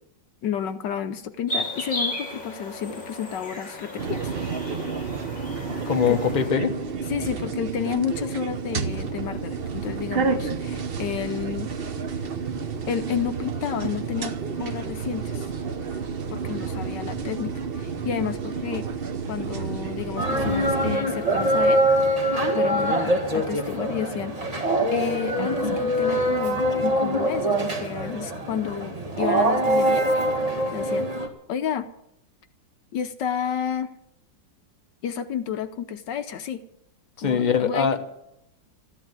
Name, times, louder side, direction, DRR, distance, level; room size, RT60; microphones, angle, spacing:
voice 1, 0.4-4.3 6.1-6.2 7.1-11.7 12.9-14.3 14.6-15.5 16.3-18.9 19.3-21.8 22.5-30.1 30.7-31.9 32.9-33.9 35.0-36.6 37.2-37.9, left 8 dB, 70° left, 10 dB, 1.4 m, -31 dB
sound 1, 1.5-6.5, left 1 dB, 50° left, 4.1 m, -34 dB
sound 2, 4.0-21.0, right 5 dB, 45° right, 0.8 m, -30 dB
voice 2, 5.7-6.7 37.2-38.0, left 7 dB, 25° left, 5 dB, 1.2 m, -22 dB
sound 3, 20.2-31.3, right 1 dB, 20° right, 1.9 m, -23 dB
14.0 x 10.5 x 9.3 m, 0.80 s
omnidirectional pair, 2.0 m